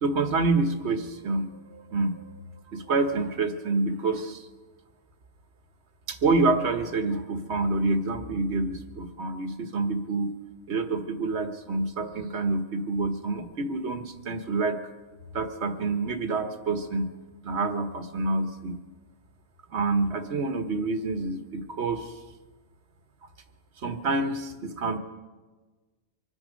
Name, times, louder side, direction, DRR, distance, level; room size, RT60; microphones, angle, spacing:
voice 1, 0.0-2.4 2.7-4.5 6.1-10.3 10.7-14.8 15.3-17.1 17.4-18.8 19.7-22.1 23.8-25.0, right 3 dB, 70° right, 8 dB, 1.4 m, -27 dB
25.0 x 10.0 x 5.1 m, 1.3 s
omnidirectional pair, 1.2 m